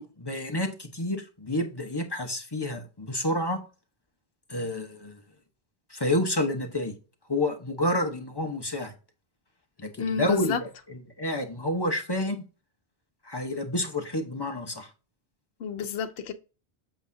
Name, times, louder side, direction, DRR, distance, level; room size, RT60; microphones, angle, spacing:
voice 1, 0.0-3.6 4.5-5.2 5.9-6.9 7.3-8.9 9.8-10.6 10.9-12.4 13.2-14.9, left 1 dB, 25° left, 1.0 m, -29 dB
voice 2, 10.0-10.6 15.6-16.3, left 6 dB, 75° left, 1.0 m, -30 dB
8.0 x 6.1 x 2.7 m
omnidirectional pair, 1.1 m